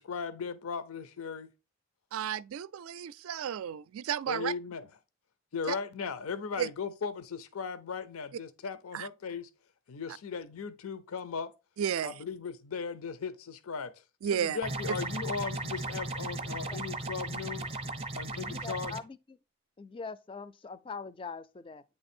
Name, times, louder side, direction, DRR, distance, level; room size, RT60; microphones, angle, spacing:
voice 1, 0.0-1.5 4.3-4.9 5.5-9.5 9.9-11.5 12.0-17.8 18.1-18.9, left 5 dB, 80° left, 0.5 m, -37 dB
voice 2, 2.1-4.5 6.6-6.7 8.9-9.1 11.8-12.1 14.2-14.6, right 9 dB, 75° right, 0.3 m, -32 dB
sound 1, 14.6-19.0, right 2 dB, 25° right, 0.5 m, -36 dB
voice 3, 18.3-19.4 19.8-21.8, left 4 dB, 25° left, 0.3 m, -43 dB
8.9 x 3.3 x 4.3 m
head